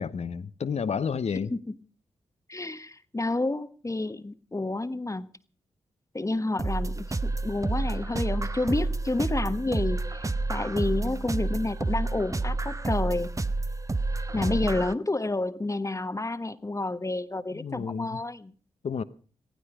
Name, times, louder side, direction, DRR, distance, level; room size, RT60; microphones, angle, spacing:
voice 1, 0.0-1.5 14.3-14.6 17.5-18.2 18.8-19.0, left 6 dB, 60° left, 0.9 m, -31 dB
voice 2, 2.5-5.3 6.1-13.3 14.3-18.5, left 2 dB, 25° left, 1.1 m, -30 dB
sound 1, 6.6-14.9, right 3 dB, 25° right, 0.9 m, -29 dB
16.0 x 15.5 x 4.9 m
supercardioid pair, 40°, 12 cm